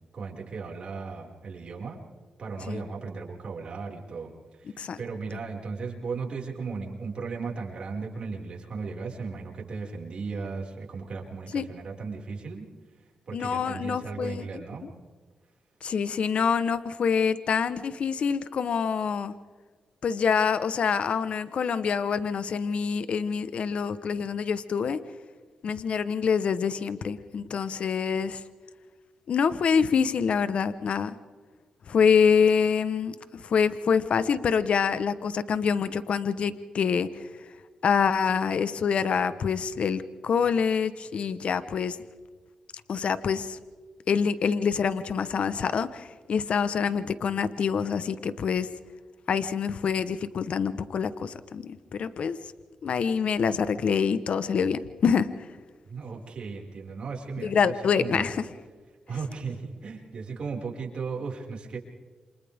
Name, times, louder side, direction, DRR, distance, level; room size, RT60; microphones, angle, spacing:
voice 1, 0.1-2.0 2.4-12.7 13.3-14.9 55.9-58.3 59.1-61.8, right 4 dB, 55° right, -1 dB, 5.5 m, -36 dB
voice 2, 13.3-14.4 15.8-19.3 20.0-25.0 25.6-28.4 29.3-31.2 31.9-37.1 37.8-42.0 42.9-43.6 44.1-48.7 49.3-52.4 52.8-55.3 57.4-58.4, left 6 dB, 65° left, 13 dB, 1.1 m, -26 dB
29.0 x 26.0 x 3.6 m, 1.4 s
cardioid pair, 70°, 2 cm